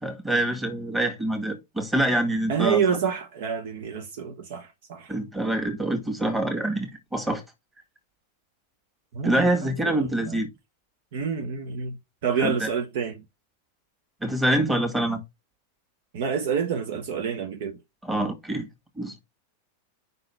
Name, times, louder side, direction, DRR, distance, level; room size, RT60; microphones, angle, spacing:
voice 1, 0.0-2.8 5.1-7.4 9.2-10.5 12.4-12.7 14.2-15.2 18.0-18.7 19.0-19.2, right 1 dB, 10° right, 1.9 m, -25 dB
voice 2, 2.5-5.1 9.1-10.4 11.1-12.0 12.2-13.2 16.1-17.8, right 7 dB, 55° right, 0.9 m, -28 dB
5.4 x 3.9 x 5.9 m
figure-of-eight pair, 90°, 0 cm